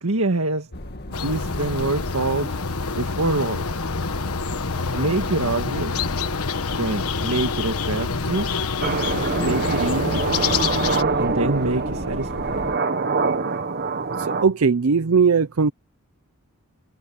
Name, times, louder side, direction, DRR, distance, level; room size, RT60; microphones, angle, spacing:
voice 1, 0.0-0.7 1.2-2.6 3.0-3.7 4.9-5.9 6.7-8.5 9.4-10.2 11.2-12.7, right 2 dB, 85° right, 1.7 m, -25 dB
sound 1, 0.7-12.8, left 1 dB, 50° left, 1.9 m, -35 dB
sound 2, 1.1-11.0, left 5 dB, 85° left, 1.3 m, -27 dB
sound 3, 8.8-14.4, right 4 dB, 50° right, 1.4 m, -24 dB
voice 2, 14.2-15.7, right 5 dB, 70° right, 0.6 m, -19 dB
head